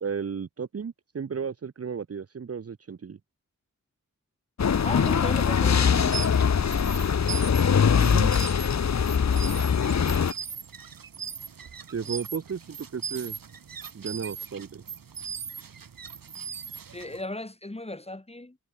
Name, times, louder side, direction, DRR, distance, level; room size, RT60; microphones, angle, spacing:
voice 1, 0.0-3.2 8.0-8.3 11.9-13.3 13.9-14.8, right 6 dB, 45° right, 0.8 m, -34 dB
sound 1, 4.6-10.3, left 7 dB, 55° left, 1.0 m, -22 dB
voice 2, 4.8-6.2 16.9-18.6, left 2 dB, 20° left, 3.1 m, -35 dB
sound 2, 5.9-17.2, right 7 dB, 85° right, 3.4 m, -39 dB
cardioid pair, 65°, 33 cm